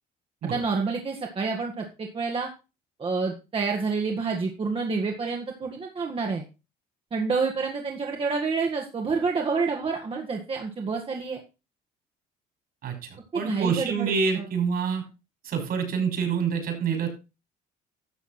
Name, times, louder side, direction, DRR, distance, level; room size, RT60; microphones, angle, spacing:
voice 1, 0.5-2.5 3.0-6.4 7.1-11.4 13.3-14.5, right 4 dB, 35° right, 1 dB, 2.0 m, -28 dB
voice 2, 13.3-15.0 15.4-17.1, right 6 dB, 65° right, 5 dB, 5.7 m, -26 dB
12.5 x 7.2 x 4.4 m, 0.29 s
cardioid pair, 110°, 17 cm